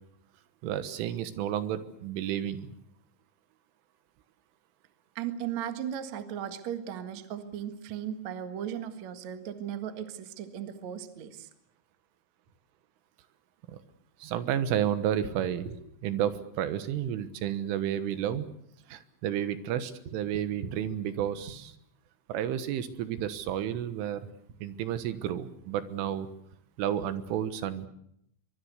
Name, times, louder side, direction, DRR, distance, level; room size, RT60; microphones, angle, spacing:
voice 1, 0.6-2.8 13.7-13.8 14.2-15.7 16.0-18.5 18.9-21.7 22.3-24.2 24.6-26.3 26.8-27.9, right 10 dB, 75° right, 12 dB, 3.7 m, -31 dB
voice 2, 5.2-11.5 15.7-15.8, right 9 dB, 60° right, 8 dB, 1.9 m, -37 dB
24.0 x 22.5 x 8.1 m, 0.73 s
omnidirectional pair, 6.0 m